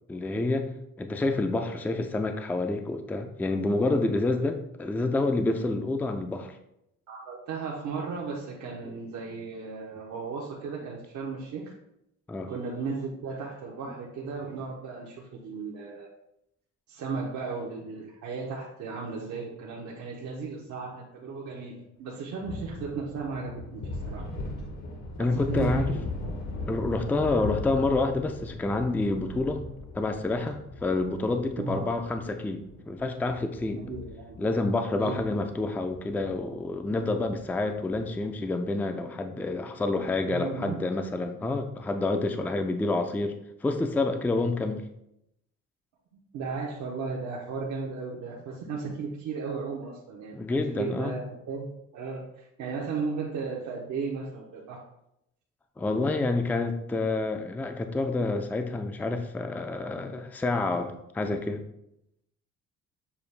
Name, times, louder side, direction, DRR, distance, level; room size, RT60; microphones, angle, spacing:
voice 1, 0.1-0.7 1.0-6.5 8.8-8.9 12.3-12.5 25.2-25.9 26.7-29.6 29.9-33.8 34.4-44.8 50.3-51.2 55.8-61.6, left 2 dB, 5° left, 6 dB, 0.3 m, -28 dB
voice 2, 7.1-11.7 12.5-16.1 16.9-24.2 25.2-26.0 26.9-27.2 31.6-31.9 33.8-34.4 35.0-35.2 40.3-40.8 44.3-44.6 46.3-51.7 51.9-54.8, right 4 dB, 70° right, -2 dB, 0.8 m, -35 dB
sound 1, 22.4-38.2, left 2 dB, 65° left, 1.0 m, -39 dB
6.8 x 2.3 x 3.3 m, 0.81 s
cardioid pair, 90°, 30 cm